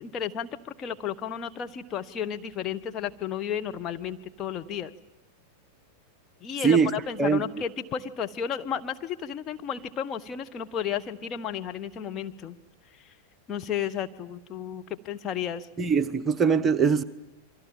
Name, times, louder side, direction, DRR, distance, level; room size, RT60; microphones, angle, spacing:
voice 1, 0.0-4.9 6.4-12.6 13.5-15.7, left 8 dB, 30° left, 6 dB, 1.3 m, -33 dB
voice 2, 15.8-17.0, right 6 dB, 20° right, 10 dB, 1.1 m, -22 dB
29.0 x 24.0 x 7.5 m, 0.98 s
figure-of-eight pair, 90°, 0 cm